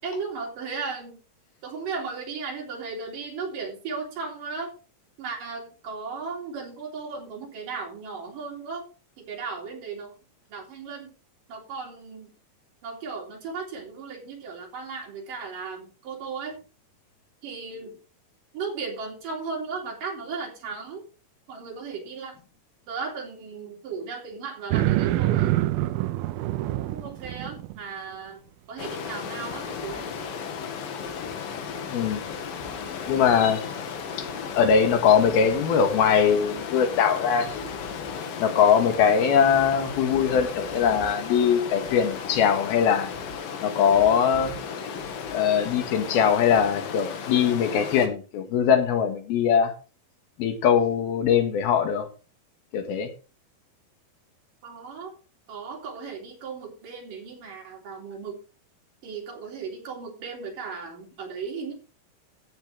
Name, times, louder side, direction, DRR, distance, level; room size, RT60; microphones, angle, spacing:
voice 1, 0.0-1.2 1.6-4.7 5.2-8.9 9.2-10.1 10.5-11.1 11.5-12.3 12.8-16.6 17.4-18.0 18.5-21.0 21.5-22.4 22.9-25.6 26.8-30.1 54.6-55.2 55.5-58.4 59.0-61.7, right 5 dB, 65° right, 5.0 m, -36 dB
sound 1, 24.7-27.8, right 16 dB, 85° right, 2.5 m, -25 dB
Stream, 28.8-48.1, left 6 dB, 70° left, 3.2 m, -35 dB
voice 2, 31.9-32.2 33.1-33.6 34.2-34.3 34.6-37.8 38.4-43.1 43.6-44.5 45.3-49.7 50.4-52.1 52.7-53.1, left 7 dB, 90° left, 3.5 m, -21 dB
14.5 x 9.0 x 3.3 m
omnidirectional pair, 4.2 m